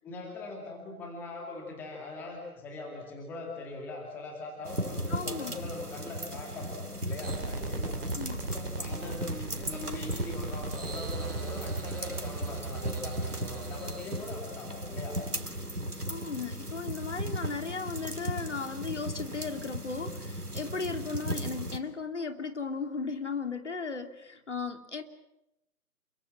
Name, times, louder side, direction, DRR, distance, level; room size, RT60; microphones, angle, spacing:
voice 1, 0.0-8.0 8.4-15.2 21.1-21.4, left 2 dB, 5° left, 1 dB, 2.3 m, -41 dB
sound 1, 4.6-21.8, right 1 dB, 90° right, 3.5 m, -37 dB
voice 2, 5.1-5.7 8.1-8.4 16.1-25.0, left 4 dB, 50° left, 8 dB, 3.0 m, -36 dB
sound 2, 7.2-15.3, right 4 dB, 40° right, 4.8 m, -38 dB
29.0 x 24.0 x 7.4 m, 0.84 s
figure-of-eight pair, 150°, 45 cm